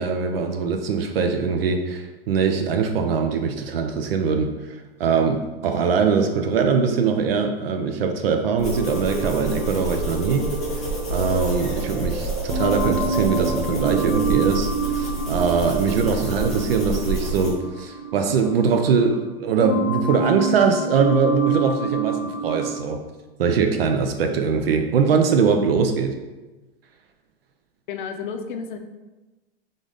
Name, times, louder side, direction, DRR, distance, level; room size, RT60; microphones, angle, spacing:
voice 1, 0.0-10.5 11.1-23.0 23.4-26.2, right 5 dB, 70° right, 5 dB, 0.6 m, -22 dB
sound 1, 8.6-17.5, right 1 dB, ahead, 0.5 m, -28 dB
sound 2, 8.7-12.0 12.5-19.3 19.6-22.8, right 5 dB, 20° right, 1.5 m, -28 dB
voice 2, 27.9-28.8, left 6 dB, 55° left, 6 dB, 0.5 m, -31 dB
3.8 x 3.4 x 3.9 m, 1.2 s
supercardioid pair, 170°, 30 cm